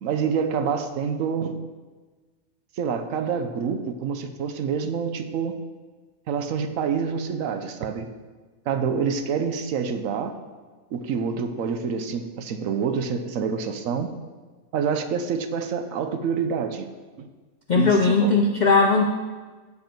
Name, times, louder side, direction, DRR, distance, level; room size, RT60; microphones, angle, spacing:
voice 1, 0.0-1.6 2.8-5.6 6.3-8.1 8.7-10.4 10.9-14.1 14.7-16.9 17.2-17.3 17.7-18.4, right 6 dB, 75° right, 8 dB, 1.0 m, -27 dB
voice 2, 17.7-19.1, left 4 dB, 65° left, 3 dB, 0.4 m, -18 dB
9.4 x 5.1 x 4.4 m, 1.4 s
omnidirectional pair, 1.5 m